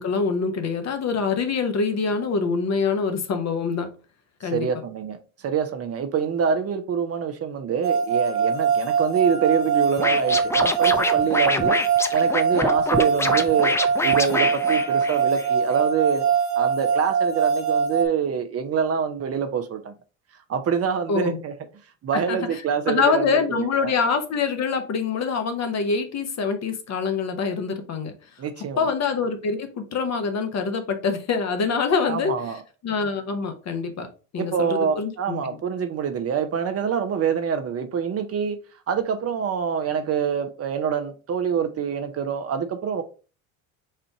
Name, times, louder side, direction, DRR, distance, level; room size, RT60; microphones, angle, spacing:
voice 1, 0.0-3.9 4.4-4.7 21.1-21.4 22.1-22.4 22.9-28.1 28.8-32.3 32.8-34.1 34.3-35.4, left 5 dB, 40° left, 1.0 m, -25 dB
voice 2, 4.5-11.8 12.1-13.7 14.0-16.2 16.5-19.9 20.5-21.5 22.0-23.9 28.4-28.9 32.1-32.6 34.4-38.6 38.9-43.0, right 7 dB, 35° right, 0.7 m, -26 dB
sound 1, 7.8-18.1, right 6 dB, 75° right, 1.0 m, -22 dB
Scratching (performance technique), 10.0-15.5, left 2 dB, 5° left, 0.4 m, -25 dB
4.3 x 2.5 x 4.5 m
hypercardioid pair, 75°, 41 cm